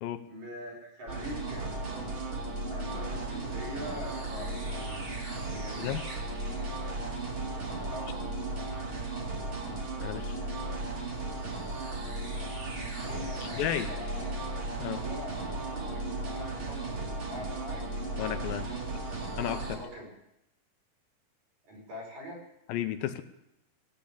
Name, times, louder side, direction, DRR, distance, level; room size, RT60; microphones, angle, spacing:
voice 1, 0.3-5.0 5.5-6.1 7.9-8.3 13.0-14.4 14.9-17.8 18.1-18.8 19.4-20.1 21.6-22.4, equal, 70° right, -2 dB, 6.6 m, -44 dB
sound 1, 1.1-19.8, right 2 dB, 35° right, 2.8 m, -35 dB
voice 2, 10.0-10.4 13.4-13.9 14.8-15.0 18.2-18.7 19.4-19.8 22.7-23.2, left 12 dB, 80° left, 10 dB, 2.4 m, -33 dB
17.0 x 8.4 x 8.6 m, 0.85 s
omnidirectional pair, 4.2 m